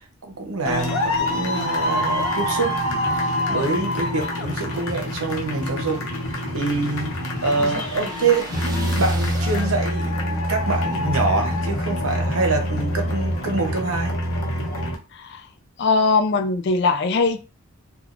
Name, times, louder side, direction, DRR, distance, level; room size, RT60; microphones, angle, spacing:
voice 1, 0.0-6.0 6.5-7.1 7.4-14.2, right 3 dB, 75° right, 0.7 m, -26 dB
sound 1, 0.6-14.9, left 1 dB, 70° left, 0.7 m, -25 dB
sound 2, 6.0-10.2, right 2 dB, 15° right, 0.5 m, -40 dB
voice 2, 15.8-17.4, left 3 dB, 50° left, 0.3 m, -20 dB
3.2 x 2.3 x 2.4 m
head